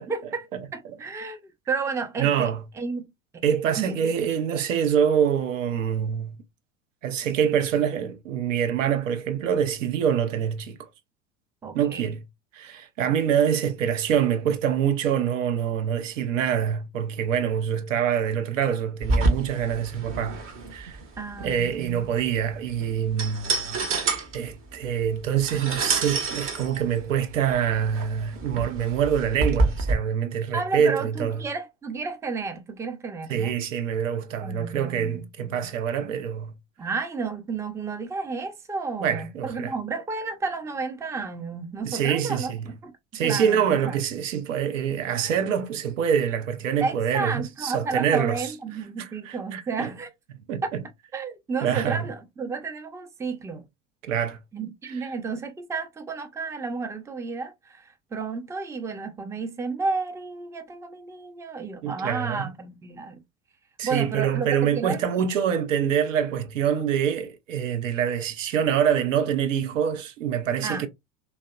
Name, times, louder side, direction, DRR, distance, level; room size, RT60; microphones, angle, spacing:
voice 1, 0.1-0.5 0.7-2.5 2.8-3.1 3.8-4.1 11.6-12.1 21.2-22.0 30.5-33.6 34.4-35.7 36.8-42.5 42.8-42.9 43.2-44.0 46.8-50.1 51.1-53.6 54.5-63.2 63.8-65.0 70.6-70.9, right 4 dB, 10° right, 0.4 m, -32 dB
voice 2, 2.2-2.6 3.4-6.4 7.0-10.8 11.7-12.2 12.5-20.4 20.7-21.0 21.4-23.8 24.3-31.4 33.3-36.5 39.0-39.7 41.8-42.7 43.1-48.5 49.0-49.9 50.5-50.8 51.6-52.0 54.0-54.4 54.9-55.0 61.8-62.5 63.8-70.9, right 8 dB, 80° right, 0.6 m, -25 dB
sound 1, 19.0-29.9, right 3 dB, 35° right, 0.7 m, -28 dB
2.7 x 2.1 x 2.2 m
hypercardioid pair, 80°, 38 cm